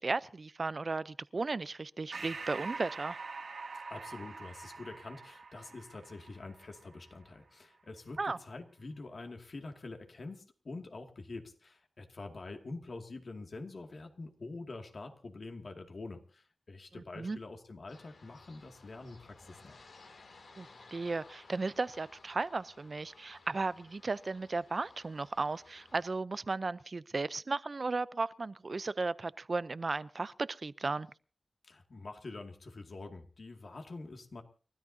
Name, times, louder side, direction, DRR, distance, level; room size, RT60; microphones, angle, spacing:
voice 1, 0.0-3.2 8.2-8.4 17.2-17.4 20.6-31.1, right 3 dB, 55° right, 0.6 m, -35 dB
Breathing, 2.1-7.0, right 4 dB, 85° right, 2.4 m, -44 dB
voice 2, 3.9-19.8 31.6-34.4, left 3 dB, 65° left, 2.3 m, -46 dB
sound 1, 17.9-26.1, left 3 dB, 90° left, 2.9 m, -58 dB
30.0 x 13.5 x 2.8 m
cardioid pair, 45°, 0 cm